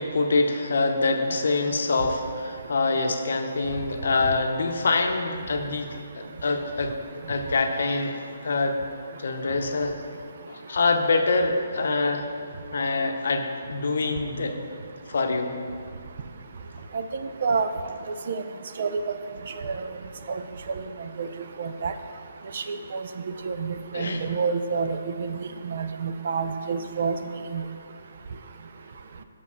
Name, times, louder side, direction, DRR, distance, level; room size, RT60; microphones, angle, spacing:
voice 1, 0.0-6.9 7.3-8.8 9.2-9.9 10.5-12.3 12.7-14.6 15.1-15.5 23.9-24.3, left 3 dB, 70° left, 5 dB, 0.8 m, -25 dB
voice 2, 21.6-21.9 22.5-23.0 23.4-27.2 27.5-27.6, right 5 dB, 50° right, 9 dB, 0.5 m, -28 dB
6.4 x 5.8 x 6.1 m, 2.2 s
hypercardioid pair, 160°, 0 cm